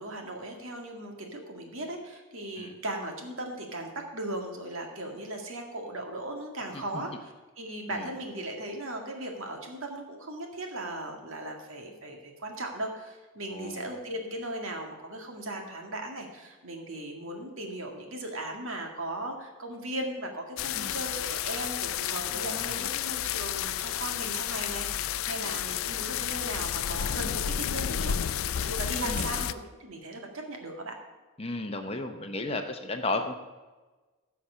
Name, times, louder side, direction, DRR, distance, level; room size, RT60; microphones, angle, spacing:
voice 1, 0.0-30.9, right 1 dB, 70° right, 2 dB, 1.9 m, -38 dB
voice 2, 13.5-13.9 20.7-20.9 22.3-22.9 25.4-25.6 29.0-29.3 31.4-33.3, left 2 dB, 25° left, 6 dB, 0.8 m, -34 dB
sound 1, 20.6-29.5, left 10 dB, 70° left, 0.4 m, -31 dB
15.0 x 5.9 x 5.5 m, 1.2 s
head